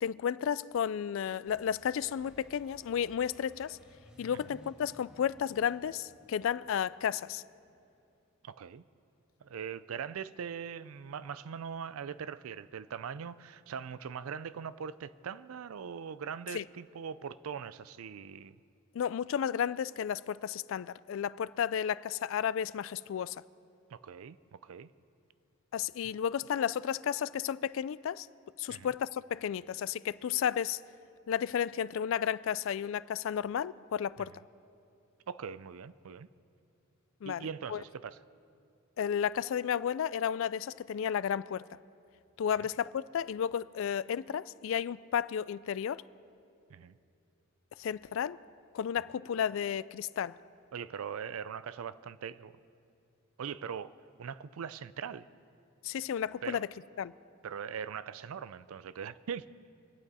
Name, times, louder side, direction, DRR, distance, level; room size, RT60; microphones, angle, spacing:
voice 1, 0.0-3.8 4.2-7.4 16.5-16.6 18.9-23.4 25.7-28.3 28.6-30.8 31.3-34.4 37.2-37.8 39.0-41.7 42.4-46.0 47.8-48.4 48.7-50.4 55.8-56.7 57.0-57.1, left 8 dB, 65° left, 0.3 m, -33 dB
sound 1, 1.5-8.0, equal, 5° right, 1.5 m, -59 dB
voice 2, 8.4-8.8 9.4-18.6 23.9-24.9 28.7-28.9 35.3-36.3 37.2-38.2 42.6-42.7 46.7-46.9 50.7-52.5 53.4-53.9 54.2-55.3 56.4-56.6 57.4-59.5, right 7 dB, 90° right, 0.4 m, -41 dB
25.5 x 9.1 x 4.2 m
head